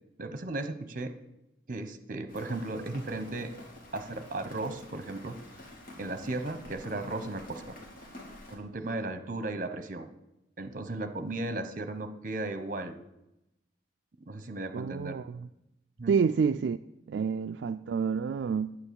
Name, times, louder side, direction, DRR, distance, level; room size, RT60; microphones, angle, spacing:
voice 1, 0.2-1.1 1.7-3.5 3.9-5.4 6.0-7.6 8.5-10.1 10.6-12.9 14.3-15.2 16.0-16.1 17.1-17.2, right 2 dB, 45° right, 1.0 m, -35 dB
Rain, 2.3-8.6, left 1 dB, 50° left, 2.9 m, -48 dB
voice 2, 14.7-15.5 16.1-16.8 17.1-18.8, right 6 dB, 70° right, 0.3 m, -28 dB
9.5 x 9.1 x 6.9 m
head